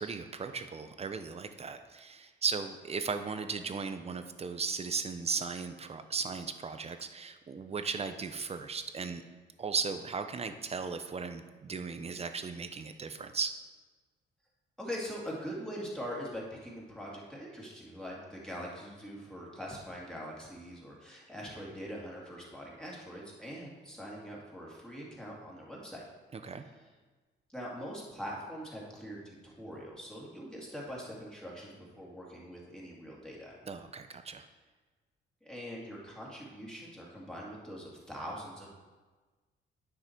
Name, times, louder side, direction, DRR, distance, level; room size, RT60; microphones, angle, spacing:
voice 1, 0.0-9.2 9.6-13.5 26.3-26.6 33.7-34.5, right 5 dB, 30° right, 9 dB, 0.7 m, -36 dB
voice 2, 14.8-26.0 27.5-33.6 34.3-34.4 35.4-38.7, equal, 5° left, -4 dB, 2.4 m, -43 dB
10.0 x 5.6 x 4.6 m, 1.3 s
cardioid pair, 90°, 20 cm